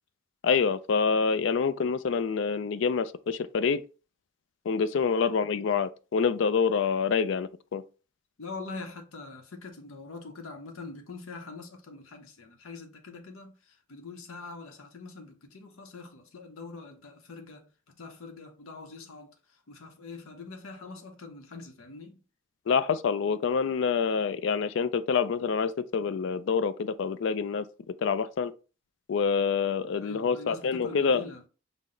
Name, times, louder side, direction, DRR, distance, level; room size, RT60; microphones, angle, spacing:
voice 1, 0.4-3.8 4.7-7.8 22.7-27.7 28.0-28.5 29.1-31.2, left 5 dB, 60° left, 0.3 m, -26 dB
voice 2, 8.4-22.2 30.0-31.4, left 3 dB, 85° left, 0.7 m, -44 dB
5.7 x 2.0 x 3.7 m
head